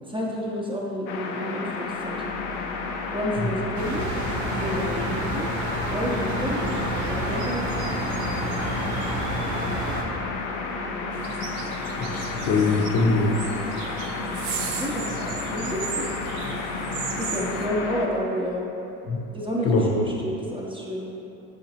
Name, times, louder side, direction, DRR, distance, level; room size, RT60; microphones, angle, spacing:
voice 1, 0.0-2.2 3.1-4.1 4.5-5.5 5.9-6.8 7.1-7.8 14.8-16.1 17.2-18.7 19.3-21.1, equal, 15° right, -4 dB, 0.6 m, -30 dB
sound 1, 1.1-18.1, left 4 dB, 90° left, 0.5 m, -31 dB
sound 2, 3.7-10.0, right 1 dB, 50° right, 0.7 m, -30 dB
sound 3, 11.1-17.7, right 6 dB, 80° right, 0.5 m, -35 dB
voice 2, 11.9-13.3 19.1-19.2 19.6-19.9, left 3 dB, 40° left, 0 dB, 0.7 m, -23 dB
5.0 x 3.8 x 2.8 m, 2.8 s
supercardioid pair, 80°, 36 cm